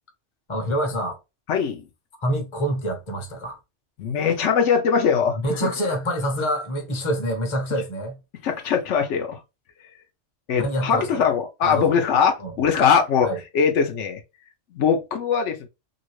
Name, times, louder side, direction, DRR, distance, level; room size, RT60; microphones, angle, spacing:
voice 1, 0.5-1.2 2.2-3.6 5.4-8.2 10.6-11.2 11.6-12.0 12.4-12.5 13.2-13.4, equal, 30° left, 0.8 m, -26 dB
voice 2, 1.5-1.8 4.0-5.7 8.4-9.4 10.5-13.3 13.5-14.2 14.7-15.7, left 6 dB, 80° left, 1.0 m, -21 dB
2.8 x 2.6 x 3.0 m
omnidirectional pair, 1.2 m